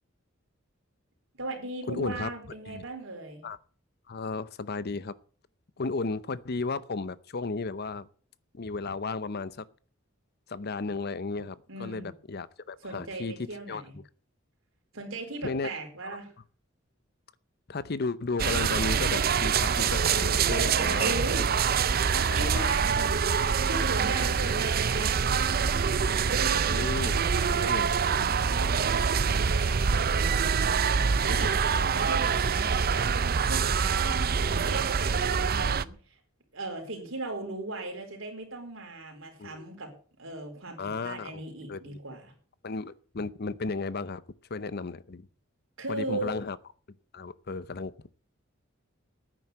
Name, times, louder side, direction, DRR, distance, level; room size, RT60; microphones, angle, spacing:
voice 1, 1.3-3.4 11.7-12.1 12.8-13.9 14.9-16.3 21.0-21.5 22.1-23.3 23.6-25.8 26.3-36.0 36.5-39.9 40.2-42.3 45.8-46.4, right 2 dB, 75° right, 4.3 m, -38 dB
voice 2, 1.9-2.3 2.7-2.8 3.4-3.6 4.1-5.2 5.8-8.1 8.5-9.6 10.5-13.8 15.4-15.7 17.7-21.1 22.3-22.7 24.2-24.5 26.6-27.2 27.6-28.3 31.1-31.3 34.0-34.2 34.5-34.7 39.4-39.7 40.8-41.4 41.7-42.0 42.6-44.2 44.5-45.3 45.9-46.6 47.1-47.9, left 3 dB, 50° left, 0.7 m, -34 dB
sound 1, 18.4-35.8, right 6 dB, 50° right, 0.6 m, -25 dB
10.0 x 9.5 x 7.9 m
head